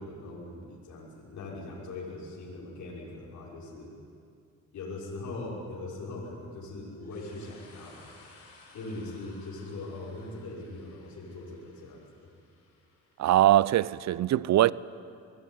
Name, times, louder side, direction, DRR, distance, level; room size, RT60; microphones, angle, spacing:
voice 1, 0.0-3.9 4.7-8.1 8.7-12.3, left 2 dB, 70° left, 6.1 m, -41 dB
Human voice, 6.9-9.7, left 2 dB, 30° left, 6.6 m, -60 dB
sound 1, 7.1-14.1, left 3 dB, 50° left, 6.5 m, -59 dB
voice 2, 13.2-14.7, right 13 dB, 65° right, 0.6 m, -22 dB
24.0 x 19.5 x 9.6 m
cardioid pair, 90°, 30 cm